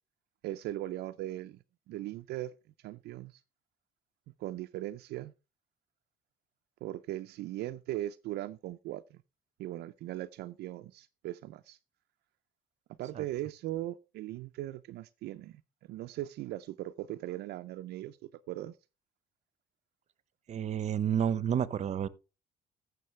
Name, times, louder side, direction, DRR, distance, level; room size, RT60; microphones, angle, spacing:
voice 1, 0.4-1.6 1.9-2.5 2.8-3.4 4.4-5.3 6.8-9.2 9.6-11.8 13.0-15.6 15.9-18.7, right 14 dB, 75° right, 0.5 m, -39 dB
voice 2, 20.5-22.1, right 9 dB, 45° right, 0.7 m, -30 dB
15.0 x 6.4 x 3.2 m
cardioid pair, 110°, 17 cm